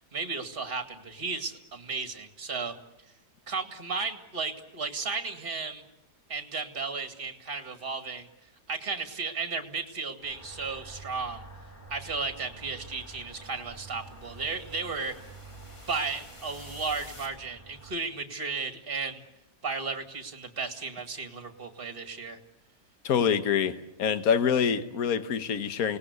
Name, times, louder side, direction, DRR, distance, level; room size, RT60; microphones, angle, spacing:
voice 1, 0.1-2.7 3.5-5.8 6.3-8.3 8.7-11.4 11.9-15.1 15.9-19.2 19.6-22.4, right 4 dB, 35° right, 7 dB, 2.3 m, -34 dB
sound 1, 10.2-17.9, right 3 dB, 10° left, 7.2 m, -48 dB
sound 2, 12.2-17.3, left 1 dB, 35° left, 4.7 m, -53 dB
voice 2, 23.0-26.0, left 7 dB, 60° left, 11 dB, 1.7 m, -26 dB
29.0 x 19.0 x 8.3 m, 0.90 s
omnidirectional pair, 1.7 m